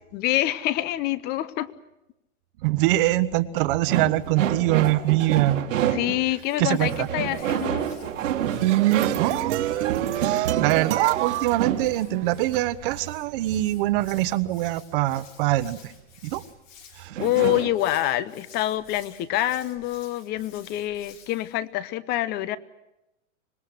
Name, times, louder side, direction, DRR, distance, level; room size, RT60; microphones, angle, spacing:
voice 1, 0.1-1.7 5.9-7.9 17.2-22.6, left 14 dB, 25° left, 18 dB, 0.8 m, -26 dB
voice 2, 2.6-5.6 6.6-7.1 9.2-9.6 10.0-15.9 16.2-16.4 16.9-17.2, right 16 dB, 45° right, 14 dB, 1.2 m, -24 dB
sound 1, 3.9-6.3 6.8-11.9 17.1-17.7, right 9 dB, 85° right, 2.4 m, -28 dB
Hands, 6.1-21.6, left 6 dB, 85° left, 4.9 m, -52 dB
sound 2, 8.3-12.6, right 14 dB, 65° right, 1.4 m, -26 dB
25.5 x 21.0 x 7.9 m, 0.92 s
supercardioid pair, 155°, 38 cm